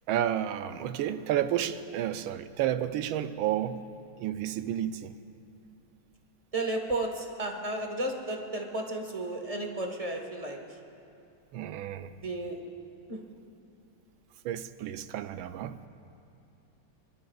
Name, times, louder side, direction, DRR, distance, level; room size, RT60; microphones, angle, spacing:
voice 1, 0.1-3.8 4.2-5.1 11.5-12.1 14.4-15.8, right 11 dB, 80° right, 11 dB, 1.4 m, -31 dB
voice 2, 6.5-10.6 12.2-12.6 13.1-13.2, right 2 dB, 25° right, 2 dB, 0.9 m, -33 dB
24.0 x 21.5 x 2.3 m, 2.7 s
omnidirectional pair, 2.2 m